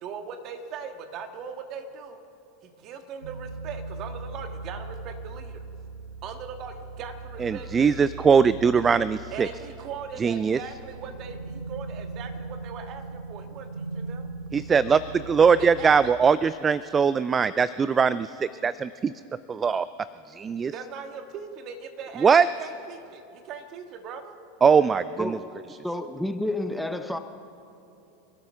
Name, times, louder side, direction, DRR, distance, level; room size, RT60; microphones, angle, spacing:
voice 1, 0.0-2.2 2.6-5.6 6.2-8.0 9.3-14.3 15.6-16.1 20.7-24.4, right 6 dB, 45° right, 6 dB, 1.6 m, -40 dB
sound 1, 3.2-16.1, right 3 dB, 80° right, 0.8 m, -39 dB
voice 2, 7.4-9.5 10.2-10.6 14.5-19.1 19.5-19.9 20.3-20.7 22.2-22.5 24.6-25.4, right 6 dB, 25° right, 17 dB, 0.3 m, -21 dB
voice 3, 25.2-25.6 25.8-27.2, left 1 dB, ahead, 8 dB, 0.8 m, -30 dB
28.5 x 12.5 x 3.6 m, 2.8 s
hypercardioid pair, 90°, 0 cm